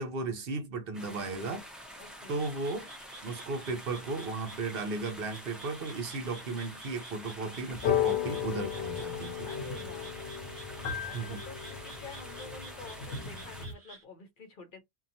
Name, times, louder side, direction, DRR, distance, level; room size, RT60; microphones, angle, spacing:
voice 1, 0.0-1.6 2.3-2.9 3.2-9.5 11.1-11.4, right 3 dB, 65° right, 0.9 m, -35 dB
sound 1, 0.9-13.7, equal, ahead, 0.6 m, -47 dB
voice 2, 2.0-2.4 9.4-10.2 11.0-14.8, left 4 dB, 55° left, 0.8 m, -49 dB
Frog, 2.3-14.0, right 3 dB, 35° right, 1.0 m, -52 dB
sound 2, 7.7-13.7, left 9 dB, 85° left, 0.9 m, -34 dB
2.8 x 2.3 x 2.6 m
omnidirectional pair, 1.1 m